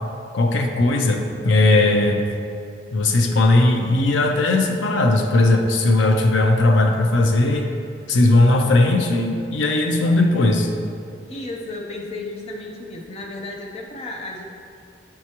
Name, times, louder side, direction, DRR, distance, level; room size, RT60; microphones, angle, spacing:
voice 1, 0.3-2.3 2.9-7.7 8.1-10.7, left 2 dB, 75° left, 3 dB, 0.5 m, -18 dB
voice 2, 11.3-14.4, left 2 dB, 30° left, 0 dB, 0.6 m, -33 dB
7.3 x 4.7 x 2.9 m, 2.4 s
head